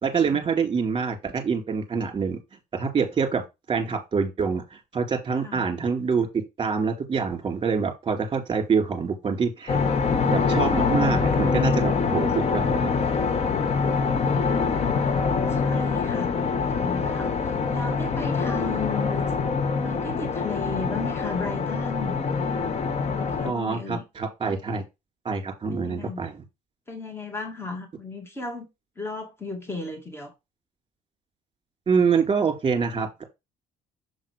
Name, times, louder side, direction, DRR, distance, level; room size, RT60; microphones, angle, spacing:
voice 1, 0.0-2.4 2.7-6.3 6.6-9.8 10.3-13.0 23.5-24.8 25.2-26.4 31.9-33.2, right 5 dB, 30° right, 2.3 m, -26 dB
sound 1, 9.7-23.5, left 5 dB, 40° left, 0.9 m, -24 dB
voice 2, 15.5-16.3 16.7-19.3 19.8-22.2 23.0-24.0 25.7-26.2 26.9-28.7 29.0-30.3, left 4 dB, 15° left, 1.8 m, -35 dB
7.0 x 3.7 x 5.0 m
cardioid pair, 110°, 17 cm